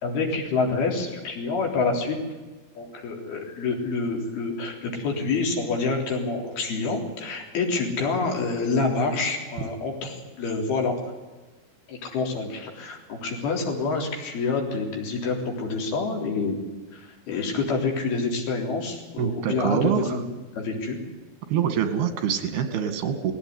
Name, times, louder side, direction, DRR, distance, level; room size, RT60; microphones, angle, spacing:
voice 1, 0.0-2.2 2.8-11.0 11.9-16.6 16.9-20.2 20.5-21.0, left 4 dB, 80° left, 1 dB, 5.8 m, -27 dB
voice 2, 19.2-20.0 21.5-23.3, right 8 dB, 85° right, 8 dB, 4.1 m, -25 dB
20.0 x 17.0 x 9.7 m, 1.2 s
omnidirectional pair, 4.4 m